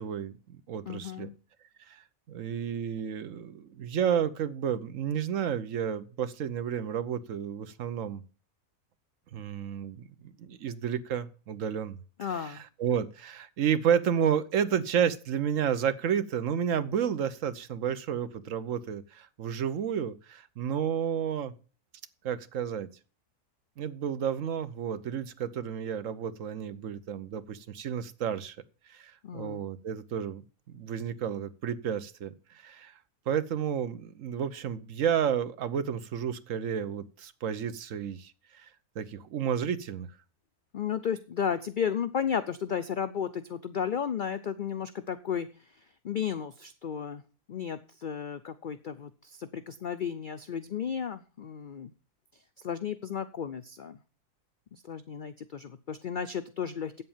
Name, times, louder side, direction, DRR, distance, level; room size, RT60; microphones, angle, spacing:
voice 1, 0.0-1.3 1.8-8.2 9.3-12.0 12.3-21.5 22.2-22.9 23.8-28.6 28.8-30.4 30.7-33.0 33.3-40.1, right 8 dB, 60° right, 13 dB, 1.2 m, -31 dB
voice 2, 0.9-1.4 12.2-12.6 29.2-29.6 40.7-47.2 47.5-51.9 52.6-54.0 54.7-57.0, left 7 dB, 65° left, 12 dB, 0.4 m, -34 dB
8.3 x 7.9 x 7.2 m, 0.38 s
omnidirectional pair, 1.6 m